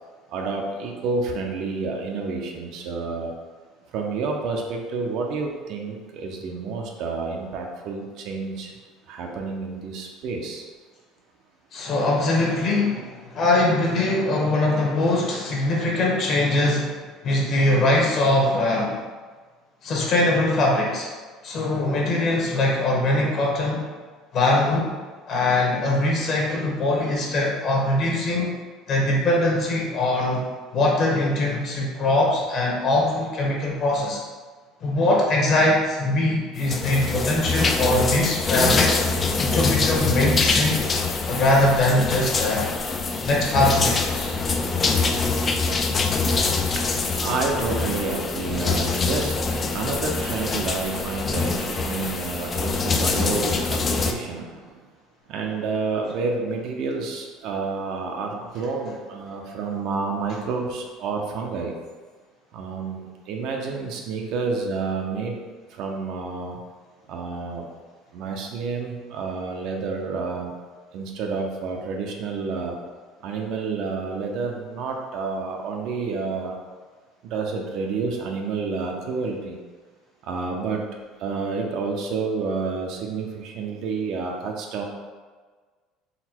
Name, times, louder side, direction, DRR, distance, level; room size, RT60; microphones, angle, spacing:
voice 1, 0.3-3.3 3.9-8.7 9.1-10.6 16.6-16.8 44.1-54.7 55.3-61.7 62.5-63.0 63.3-65.4 65.7-66.6 67.1-67.7 68.1-70.5 70.9-72.7 73.2-76.6 77.2-79.6 80.2-80.8 81.2-84.8, right 4 dB, 60° right, 1 dB, 0.6 m, -29 dB
voice 2, 11.7-17.0 17.2-19.0 19.8-21.1 21.4-23.8 24.3-24.9 25.3-28.5 28.9-34.2 34.8-39.0 39.4-40.8 41.3-42.7 43.2-44.3, left 2 dB, 40° left, -2 dB, 1.0 m, -22 dB
sound 1, 36.6-54.1, left 4 dB, 25° left, 0.3 m, -24 dB
4.0 x 2.2 x 4.4 m, 1.4 s
cardioid pair, 145°, 0 cm